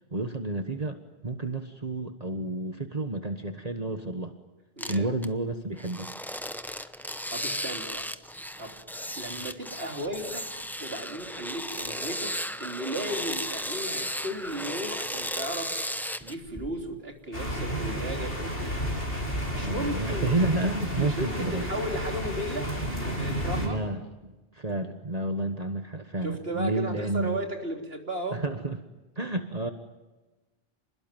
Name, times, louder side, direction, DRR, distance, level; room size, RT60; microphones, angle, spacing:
voice 1, 0.1-4.3 4.9-6.1 19.6-21.7 23.6-27.4 28.3-28.8 29.1-29.7, right 2 dB, 40° right, 7 dB, 1.5 m, -30 dB
sound 1, 4.8-5.3 5.8-17.0 17.5-18.1, equal, ahead, 0.8 m, -35 dB
voice 2, 4.8-5.1 6.9-8.2 8.6-8.8 9.2-10.5 10.8-15.7 16.2-18.8 19.5-20.3 21.0-22.8 23.0-23.8 26.2-28.4, right 1 dB, 65° right, 3 dB, 3.8 m, -35 dB
sound 2, 17.3-23.7, equal, 60° left, 6.5 m, -31 dB
29.5 x 21.0 x 9.2 m, 1.1 s
omnidirectional pair, 1.1 m